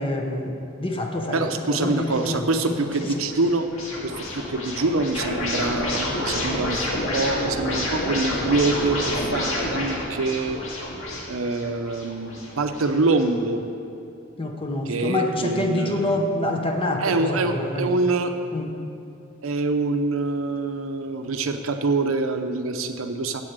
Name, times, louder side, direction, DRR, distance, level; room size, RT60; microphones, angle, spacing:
voice 1, 0.0-3.1 14.4-18.0 18.5-18.7, left 1 dB, 25° left, 3 dB, 0.9 m, -27 dB
voice 2, 1.3-3.7 4.0-10.6 11.3-13.6 14.8-16.2 17.0-18.3 19.4-23.4, right 3 dB, 85° right, 7 dB, 0.7 m, -25 dB
sound 1, 1.7-13.2, left 1 dB, 75° left, 2.1 m, -29 dB
7.6 x 7.3 x 8.0 m, 2.6 s
head